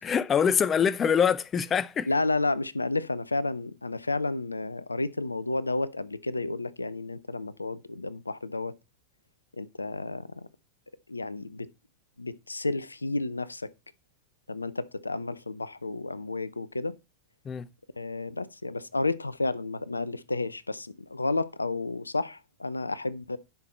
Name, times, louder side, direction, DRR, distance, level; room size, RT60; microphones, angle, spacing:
voice 1, 0.0-2.1 17.5-17.7, left 7 dB, 25° left, 0.4 m, -24 dB
voice 2, 2.1-8.7 9.6-10.5 11.1-11.7 12.2-13.7 14.5-17.0 18.0-23.4, left 3 dB, 80° left, 0.5 m, -31 dB
10.5 x 5.9 x 4.2 m
figure-of-eight pair, 90°, 0 cm